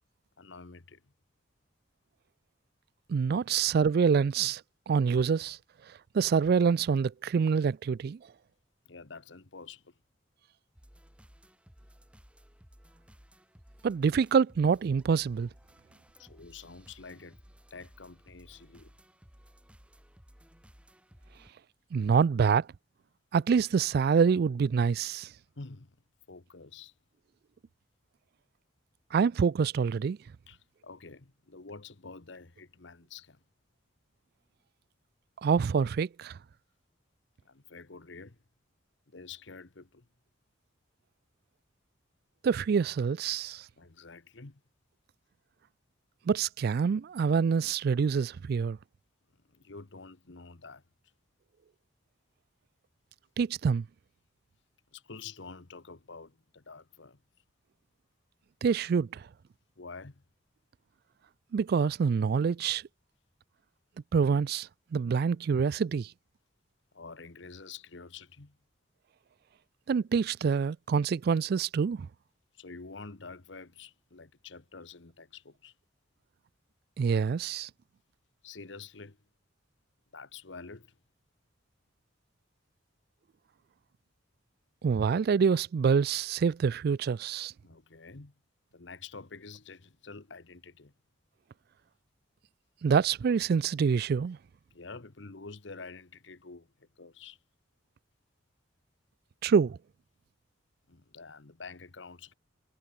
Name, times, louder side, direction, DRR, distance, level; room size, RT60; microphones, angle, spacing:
voice 1, 0.4-1.0 3.5-3.6 8.9-9.9 16.2-17.4 17.7-18.9 25.6-26.0 26.3-26.9 30.5-33.4 37.4-38.4 39.1-40.1 43.8-44.6 49.5-50.8 54.9-57.2 59.8-60.2 66.9-68.6 72.5-75.7 78.4-79.2 80.1-80.9 87.6-88.3 88.7-90.9 94.7-97.4 100.9-102.3, left 4 dB, 65° left, 1.2 m, -48 dB
voice 2, 3.1-4.6 4.9-5.6 6.1-8.2 13.8-15.5 21.9-22.7 23.3-25.3 29.1-30.2 35.4-36.4 42.4-43.7 46.3-48.8 53.4-53.9 58.6-59.3 61.5-62.8 64.1-66.1 69.9-72.1 77.0-77.7 84.8-87.5 92.8-94.4 99.4-99.8, right 6 dB, 50° right, 0.3 m, -26 dB
sound 1, 10.7-21.5, equal, 5° right, 1.8 m, -58 dB
head